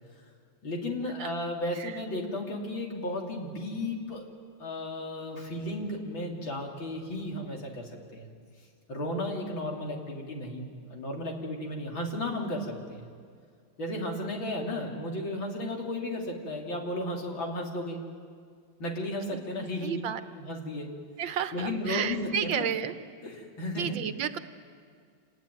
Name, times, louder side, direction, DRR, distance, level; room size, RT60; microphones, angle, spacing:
voice 1, 0.6-4.3 4.6-8.3 8.9-13.1 13.8-18.0 18.8-20.0 20.4-20.9 21.5-22.7 23.2-24.0, left 1 dB, 90° left, 0 dB, 4.0 m, -34 dB
voice 2, 19.3-20.2 21.2-22.9 23.8-24.4, right 8 dB, 80° right, 10 dB, 1.7 m, -32 dB
28.5 x 19.5 x 9.3 m, 2.1 s
omnidirectional pair, 2.1 m